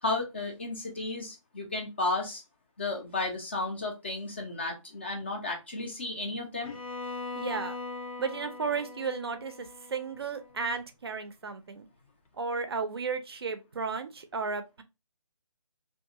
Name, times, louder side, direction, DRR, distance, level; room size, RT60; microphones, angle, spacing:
voice 1, 0.0-2.4 2.8-6.7, left 2 dB, 20° left, 0.4 m, -33 dB
Bowed string instrument, 6.6-10.7, left 3 dB, 80° left, 0.6 m, -41 dB
voice 2, 7.3-7.8 8.2-11.9 12.4-14.8, right 5 dB, 45° right, 0.4 m, -34 dB
2.5 x 2.3 x 2.7 m
figure-of-eight pair, 150°, 18 cm